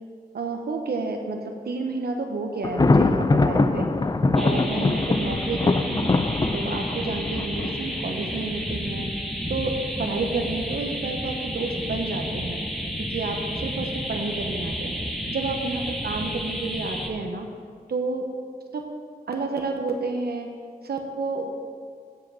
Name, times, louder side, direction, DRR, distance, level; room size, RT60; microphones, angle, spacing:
voice 1, 0.3-3.9 4.3-6.1 6.5-9.1 9.5-12.6 13.1-15.0 15.3-17.5 17.9-18.3 18.7-18.8 19.3-20.5 20.8-21.6, right 3 dB, 75° right, 3 dB, 1.0 m, -30 dB
Thunder, 2.6-8.4, left 3 dB, 25° left, 0.4 m, -23 dB
sound 1, 4.4-17.1, equal, ahead, 1.2 m, -31 dB
7.7 x 7.6 x 6.8 m, 2.1 s
wide cardioid pair, 105°, 17 cm